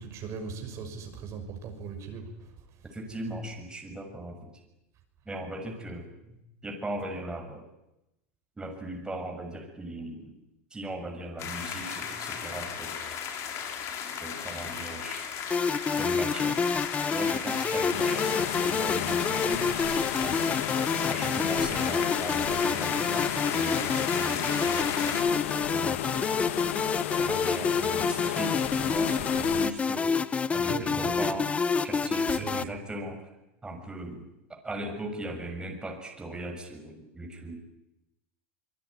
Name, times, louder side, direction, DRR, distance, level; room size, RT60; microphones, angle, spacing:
voice 1, 0.0-2.5 30.7-31.2 32.3-32.7, right 5 dB, 45° right, 4 dB, 6.0 m, -39 dB
voice 2, 2.9-4.5 5.2-6.4 6.6-7.6 8.6-10.3 10.7-13.0 14.2-15.2 15.9-16.6 17.1-20.6 21.1-25.3 25.7-26.6 27.2-30.2 30.5-31.5 31.8-33.2 33.6-34.3 34.6-37.6, right 1 dB, 10° right, 2 dB, 6.8 m, -38 dB
sound 1, 11.4-25.2, left 7 dB, 45° left, 5.2 m, -35 dB
sound 2, 15.5-32.6, left 5 dB, 20° left, 1.0 m, -28 dB
sound 3, 17.9-29.7, left 14 dB, 75° left, 1.4 m, -33 dB
25.0 x 22.5 x 9.8 m, 0.90 s
supercardioid pair, 120°, 7 cm